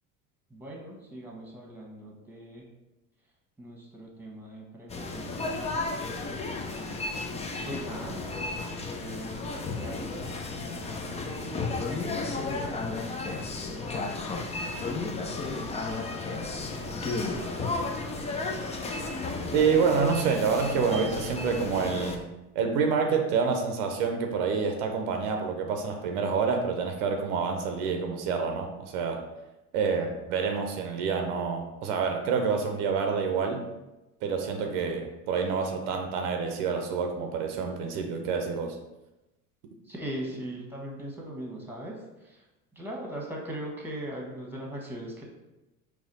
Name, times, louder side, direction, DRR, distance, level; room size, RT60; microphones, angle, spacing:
voice 1, 0.5-2.7 3.6-5.6 7.6-8.3 8.9-11.6 11.9-12.9 15.3-15.8 16.6-17.8 39.8-42.5 42.7-45.2, right 1 dB, 5° right, -1 dB, 1.2 m, -40 dB
sound 1, 4.9-22.2, left 3 dB, 15° left, 0.3 m, -33 dB
voice 2, 19.5-22.2 22.5-29.3 29.7-33.7 34.2-38.8, right 5 dB, 70° right, 4 dB, 0.7 m, -27 dB
4.2 x 2.3 x 3.9 m, 0.99 s
hypercardioid pair, 70°, 46 cm